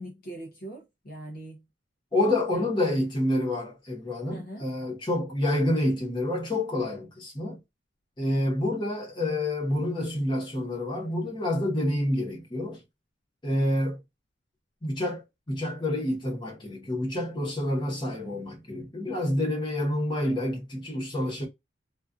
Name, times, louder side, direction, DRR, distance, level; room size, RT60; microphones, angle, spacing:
voice 1, 0.0-1.6 2.5-2.7 4.3-4.7, right 1 dB, 50° left, 0.5 m, -41 dB
voice 2, 2.1-7.6 8.2-12.8 13.4-14.0 14.8-21.5, left 1 dB, 25° left, 0.9 m, -28 dB
2.4 x 2.4 x 2.3 m
head